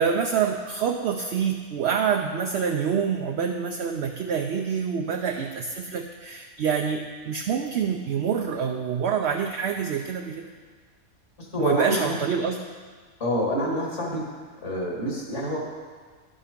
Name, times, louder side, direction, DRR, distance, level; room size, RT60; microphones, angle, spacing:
voice 1, 0.0-10.5 11.6-12.6, right 7 dB, 60° right, 3 dB, 0.8 m, -26 dB
voice 2, 11.4-12.1 13.2-14.2 14.6-15.6, equal, 55° left, -2 dB, 2.5 m, -27 dB
11.5 x 7.6 x 5.1 m, 1.5 s
omnidirectional pair, 1.5 m